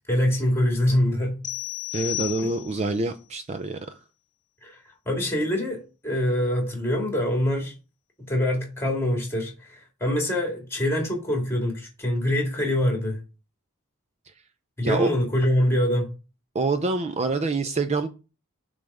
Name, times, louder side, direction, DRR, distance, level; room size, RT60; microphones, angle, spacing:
voice 1, 0.1-1.4 2.4-2.5 4.6-4.8 5.1-7.7 8.2-13.2 14.8-16.1, left 1 dB, 10° left, 2.1 m, -24 dB
sound 1, 1.4-3.0, left 18 dB, 35° left, 1.5 m, -33 dB
voice 2, 1.9-3.8 14.8-15.1 16.5-18.1, right 3 dB, 30° right, 0.4 m, -26 dB
7.0 x 3.4 x 5.3 m
head